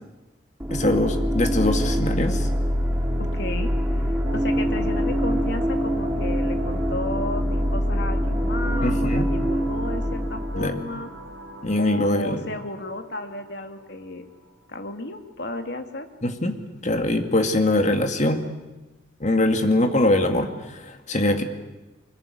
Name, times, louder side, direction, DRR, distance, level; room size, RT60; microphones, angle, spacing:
sound 1, 0.6-11.4, equal, 10° right, 3.0 m, -24 dB
voice 1, 0.7-2.5 8.8-9.3 10.5-10.8 11.6-12.5 16.2-16.5 16.8-18.4 19.2-21.4, left 1 dB, 35° left, 6 dB, 2.2 m, -22 dB
voice 2, 3.2-3.7 4.0-11.1 11.8-14.3 14.7-16.1, left 2 dB, 55° left, 6 dB, 2.3 m, -33 dB
sound 2, 4.3-15.2, right 1 dB, 75° right, 4.6 m, -43 dB
24.0 x 22.0 x 10.0 m, 1.1 s
head